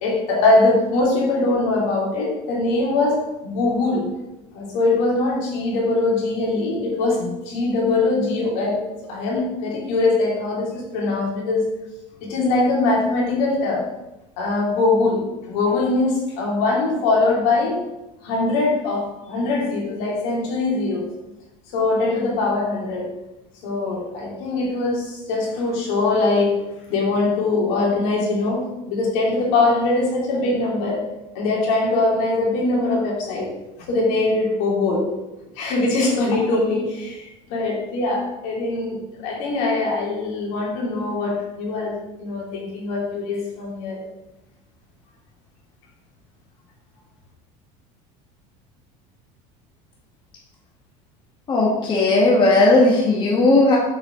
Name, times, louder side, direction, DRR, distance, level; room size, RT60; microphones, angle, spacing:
voice 1, 0.0-4.1 4.5-8.8 9.1-11.6 12.2-13.9 14.4-17.8 18.2-21.1 21.7-23.1 23.6-26.5 26.9-31.0 31.3-33.5 33.9-35.1 35.6-44.0, left 2 dB, 70° left, -3 dB, 2.7 m, -22 dB
voice 2, 51.5-53.8, left 2 dB, 30° left, -3 dB, 1.3 m, -16 dB
6.9 x 5.7 x 3.7 m, 0.97 s
cardioid pair, 140°, 16 cm